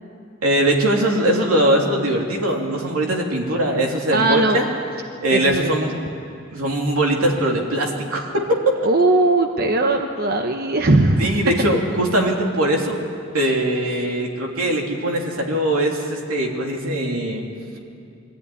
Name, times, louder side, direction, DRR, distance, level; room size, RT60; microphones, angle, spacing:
voice 1, 0.4-4.6 5.2-5.9 6.5-8.5 11.2-13.0 13.3-17.4, right 1 dB, 90° right, 0 dB, 2.9 m, -21 dB
voice 2, 4.1-4.6 5.3-6.0 8.8-11.4, right 2 dB, 45° right, 5 dB, 1.0 m, -19 dB
23.0 x 14.0 x 9.9 m, 2.6 s
head